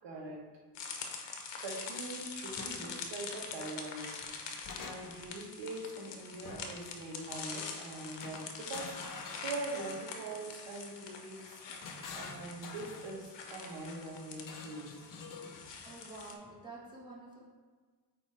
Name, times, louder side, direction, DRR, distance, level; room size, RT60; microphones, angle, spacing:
voice 1, 0.0-0.4 1.6-11.6 12.1-15.0, right 2 dB, 80° right, -2 dB, 1.4 m, -43 dB
sound 1, 0.7-16.3, left 5 dB, 90° left, 0.9 m, -45 dB
sound 2, 2.6-2.8 4.2-5.3 6.5-6.9 8.2-10.0 11.4-13.2 14.4-15.7, left 4 dB, 50° left, 0.7 m, -47 dB
voice 2, 15.8-17.4, right 2 dB, 10° right, -5 dB, 1.3 m, -49 dB
8.6 x 3.0 x 4.3 m, 1.4 s
wide cardioid pair, 165°, 42 cm